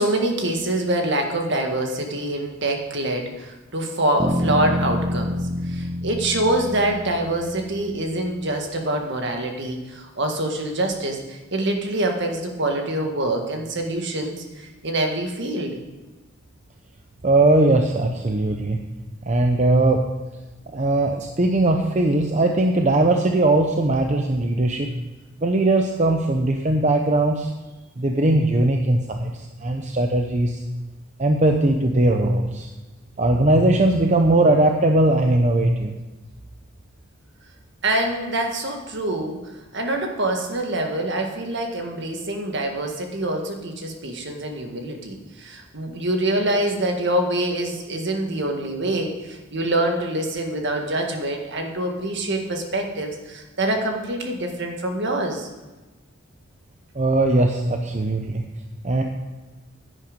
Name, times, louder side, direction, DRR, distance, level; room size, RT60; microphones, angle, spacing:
voice 1, 0.0-15.8 37.8-55.5, right 1 dB, 55° right, 3 dB, 1.8 m, -25 dB
sound 1, 4.2-8.2, equal, 15° right, 1.0 m, -27 dB
voice 2, 17.2-18.8 19.2-20.0 20.7-24.9 25.4-27.5 28.0-30.6 31.2-32.7 33.2-35.9 56.9-58.4 58.8-59.0, right 2 dB, 35° right, 3 dB, 0.7 m, -19 dB
10.5 x 9.7 x 5.2 m, 1.2 s
head